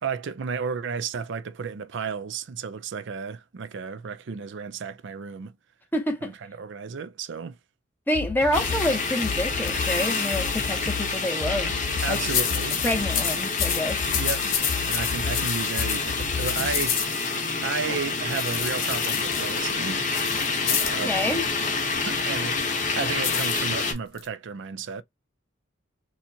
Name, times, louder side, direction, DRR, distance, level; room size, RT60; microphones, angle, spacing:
voice 1, 0.0-5.5 6.2-7.6 12.0-12.8 14.2-14.5 14.9-17.3 17.6-20.1 20.7-21.3 22.1-22.7 22.9-25.0, right 5 dB, 60° right, 0.4 m, -33 dB
voice 2, 5.9-6.3 8.1-11.7 12.1-12.2 12.8-14.0 21.0-21.4, left 1 dB, 10° left, 0.9 m, -27 dB
sound 1, 8.1-16.9, left 6 dB, 55° left, 0.5 m, -34 dB
sound 2, 8.5-23.9, left 4 dB, 40° left, 1.0 m, -28 dB
sound 3, 11.8-12.1 12.3-17.5 18.3-21.0 23.2-24.3, left 8 dB, 80° left, 1.1 m, -29 dB
4.3 x 2.4 x 2.7 m
head